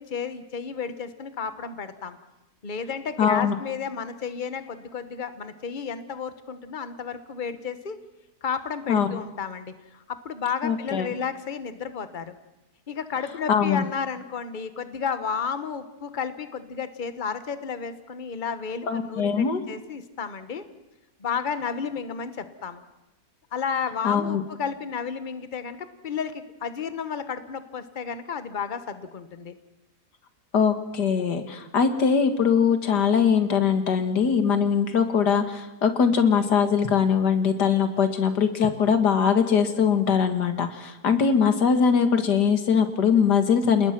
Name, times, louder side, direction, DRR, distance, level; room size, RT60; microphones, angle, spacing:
voice 1, 0.0-2.2 2.6-8.0 8.4-12.3 12.9-20.6 21.2-22.8 23.5-29.5, left 6 dB, 30° left, 11 dB, 1.3 m, -32 dB
voice 2, 3.2-3.6 8.9-9.1 10.6-11.1 13.5-13.8 18.9-19.6 24.0-24.4 30.5-43.9, left 6 dB, 85° left, 8 dB, 2.3 m, -21 dB
29.0 x 19.5 x 6.0 m, 0.95 s
omnidirectional pair, 1.7 m